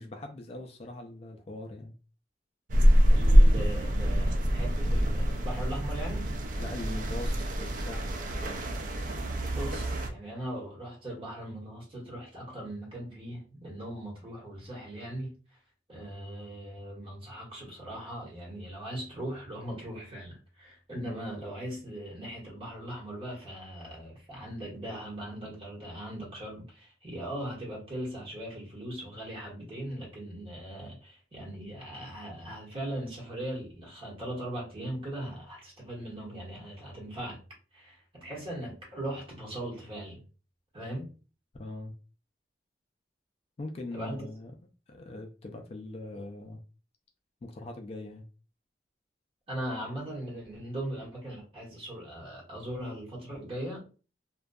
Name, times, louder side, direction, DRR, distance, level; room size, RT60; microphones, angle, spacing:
voice 1, 0.0-1.9 6.6-8.1 41.5-41.9 43.6-44.5 44.9-46.6 47.4-48.3, left 2 dB, 35° left, 0.3 m, -41 dB
sound 1, 2.7-10.1, equal, 45° right, 0.4 m, -25 dB
voice 2, 3.1-6.4 9.5-15.3 15.9-37.4 37.7-40.2 40.7-41.1 43.9-44.2 49.5-53.8, right 1 dB, 30° right, 1.1 m, -39 dB
2.6 x 2.2 x 2.2 m
head